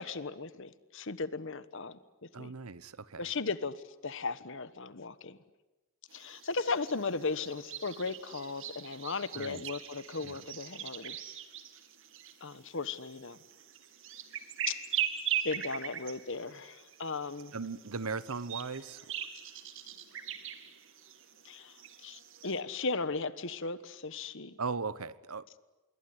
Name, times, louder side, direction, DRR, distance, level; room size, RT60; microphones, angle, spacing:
voice 1, 0.0-2.0 2.4-2.5 3.2-5.4 6.1-11.2 12.4-13.4 14.7-14.8 15.4-17.5 21.4-24.6, left 4 dB, 60° left, 15 dB, 1.3 m, -36 dB
voice 2, 2.3-3.2 9.4-9.6 10.2-10.4 17.5-19.0 24.6-25.5, right 4 dB, 85° right, 17 dB, 1.1 m, -38 dB
sound 1, 6.1-22.6, right 9 dB, 60° right, 2.4 m, -41 dB
26.5 x 23.0 x 9.8 m, 1.1 s
head